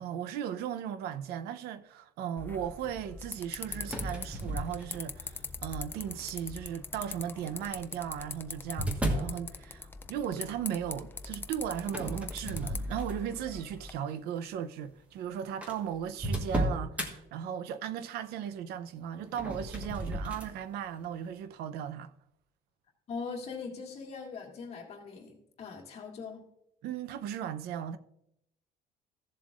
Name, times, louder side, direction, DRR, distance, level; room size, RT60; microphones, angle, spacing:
voice 1, 0.0-22.1 26.8-28.0, right 9 dB, 90° right, 0.7 m, -37 dB
sound 1, 2.4-13.9, left 3 dB, 15° left, 0.4 m, -42 dB
sound 2, 3.8-5.3 5.9-6.4 7.5-9.4 11.8-13.4 13.9-14.1 14.9-15.0 15.2-15.3 15.6-17.1 19.2-20.5, right 1 dB, 10° right, 1.3 m, -34 dB
voice 2, 23.1-26.4, left 5 dB, 40° left, 1.9 m, -41 dB
15.5 x 7.4 x 2.4 m
cardioid pair, 175°, 16 cm